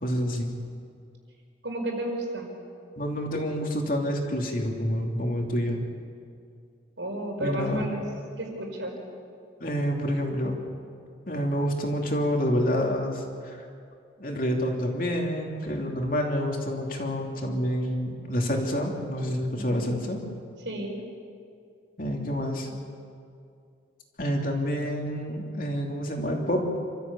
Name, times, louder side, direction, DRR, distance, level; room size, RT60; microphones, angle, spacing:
voice 1, 0.0-0.5 3.0-5.8 7.4-7.9 9.6-10.6 11.3-13.6 14.2-20.2 22.0-22.7 24.2-26.6, equal, 50° left, 1 dB, 3.0 m, -28 dB
voice 2, 1.6-2.5 7.0-8.0 8.4-9.0 19.5-19.9 20.7-21.0, right 1 dB, 85° right, 1 dB, 5.2 m, -32 dB
27.5 x 14.0 x 8.5 m, 2.4 s
head